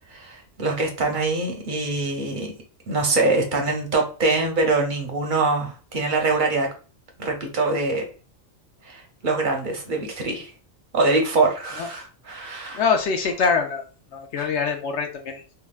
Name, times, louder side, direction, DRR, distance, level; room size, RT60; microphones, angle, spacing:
voice 1, 0.1-2.5 2.9-6.7 7.2-8.0 8.8-10.5 10.9-12.8 14.4-14.5, right 3 dB, 50° right, 2 dB, 0.8 m, -24 dB
voice 2, 12.7-13.8 14.1-15.4, left 5 dB, 70° left, 4 dB, 0.9 m, -24 dB
3.7 x 2.2 x 2.3 m, 0.36 s
omnidirectional pair, 1.2 m